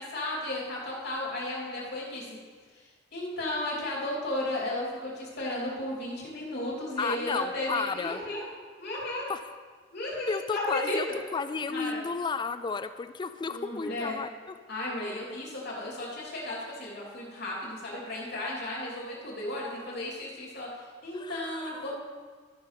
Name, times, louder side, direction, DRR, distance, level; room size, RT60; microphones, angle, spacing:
voice 1, 0.0-2.4 2.7-8.5 8.8-9.3 9.9-11.0 11.7-12.0 13.5-14.2 14.7-22.0, left 1 dB, 60° left, -5 dB, 3.2 m, -34 dB
voice 2, 7.0-8.2 9.3-9.4 10.3-11.1 11.3-14.5 21.1-21.9, left 4 dB, 25° left, 12 dB, 0.3 m, -33 dB
13.0 x 5.4 x 5.9 m, 1.5 s
head